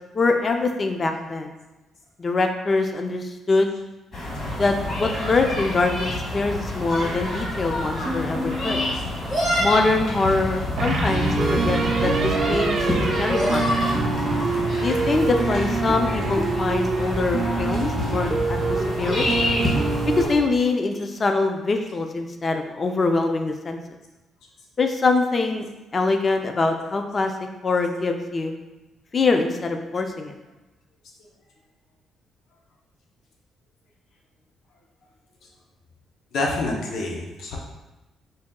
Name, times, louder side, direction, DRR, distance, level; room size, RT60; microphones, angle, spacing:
voice 1, 0.1-1.5 2.2-3.7 4.6-8.8 9.6-13.7 14.8-19.2 20.1-23.8 24.8-25.7 25.9-27.3 27.6-28.5 29.1-30.3, left 3 dB, 35° left, 5 dB, 0.4 m, -24 dB
sound 1, 4.1-20.3, left 1 dB, 55° left, 1.3 m, -27 dB
sound 2, 8.0-8.9 10.8-14.5, right 2 dB, 70° right, 0.8 m, -28 dB
sound 3, 11.4-20.3, right 4 dB, 40° right, 0.4 m, -26 dB
voice 2, 36.3-37.6, left 2 dB, 75° left, -1 dB, 0.7 m, -27 dB
4.0 x 2.2 x 3.6 m, 1.0 s
cardioid pair, 90°, 0 cm